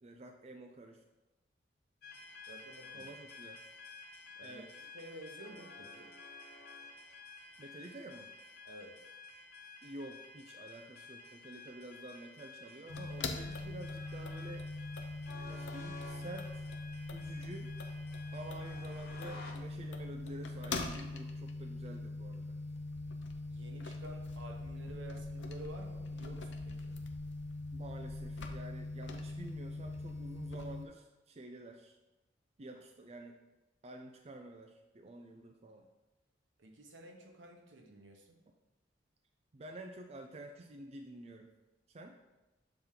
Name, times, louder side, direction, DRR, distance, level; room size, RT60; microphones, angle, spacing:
voice 1, 0.0-1.0 2.9-3.6 4.4-4.7 7.6-8.3 9.8-14.7 15.5-16.7 17.1-17.7 18.3-22.6 27.7-32.0 32.6-33.3 33.8-35.9 39.5-41.5 41.9-42.2, right 2 dB, 35° right, 3 dB, 0.4 m, -49 dB
sound 1, 2.0-19.5, left 3 dB, 50° left, 0.9 m, -52 dB
voice 2, 2.5-3.1 4.4-4.7 4.9-6.1 8.6-8.9 23.5-26.9 36.6-38.4, right 1 dB, 80° right, 2 dB, 1.0 m, -51 dB
sound 2, 12.9-30.8, left 3 dB, 70° left, 0.6 m, -42 dB
6.9 x 4.3 x 3.8 m, 1.1 s
head